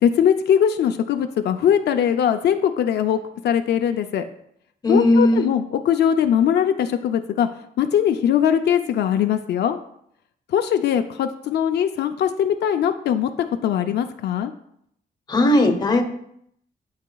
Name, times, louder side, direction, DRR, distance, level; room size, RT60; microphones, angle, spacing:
voice 1, 0.0-4.2 4.9-7.5 7.8-9.8 10.5-13.3 13.6-14.5, left 9 dB, 75° left, 7 dB, 0.4 m, -21 dB
voice 2, 4.8-5.4 15.3-16.0, left 1 dB, 25° left, 5 dB, 0.7 m, -17 dB
11.0 x 4.9 x 2.3 m, 0.71 s
wide cardioid pair, 175°, 17 cm